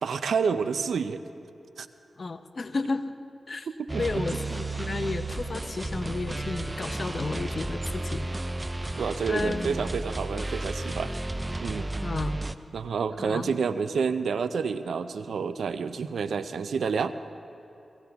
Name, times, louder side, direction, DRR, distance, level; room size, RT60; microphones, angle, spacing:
voice 1, 0.0-1.2 1.8-1.9 3.8-4.2 9.0-11.1 11.6-11.9 12.7-17.1, right 5 dB, 85° right, 12 dB, 0.5 m, -29 dB
voice 2, 2.2-3.1 3.5-3.7 3.9-8.2 9.3-9.7 12.0-12.4 13.2-13.6, left 3 dB, 55° left, 10 dB, 0.7 m, -32 dB
sound 1, 3.9-12.6, right 2 dB, 25° right, 0.5 m, -33 dB
17.5 x 16.0 x 3.5 m, 3.0 s
cardioid pair, 50°, 0 cm